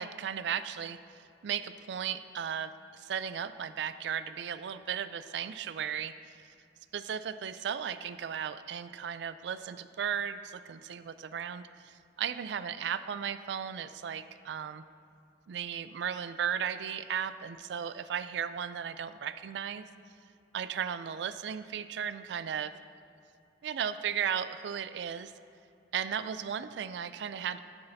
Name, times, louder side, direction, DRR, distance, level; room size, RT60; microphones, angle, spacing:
voice 1, 0.0-6.4 6.9-14.8 15.5-19.8 20.5-22.7 23.6-25.3 25.9-27.6, right 8 dB, 75° right, 13 dB, 0.3 m, -36 dB
9.7 x 8.9 x 2.7 m, 2.6 s
head